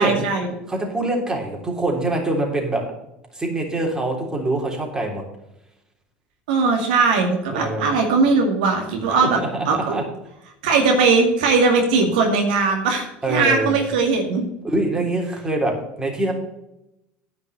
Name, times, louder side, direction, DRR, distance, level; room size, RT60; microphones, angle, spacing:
voice 1, 0.0-0.5 6.5-10.0 10.6-14.5, right 4 dB, 80° right, 2 dB, 2.2 m, -19 dB
voice 2, 0.7-2.9 3.3-5.2 7.5-7.9 9.0-10.0 13.2-13.8 14.6-16.3, right 2 dB, 15° right, 0 dB, 3.4 m, -24 dB
10.0 x 5.4 x 8.0 m, 0.86 s
supercardioid pair, 90°, 5 cm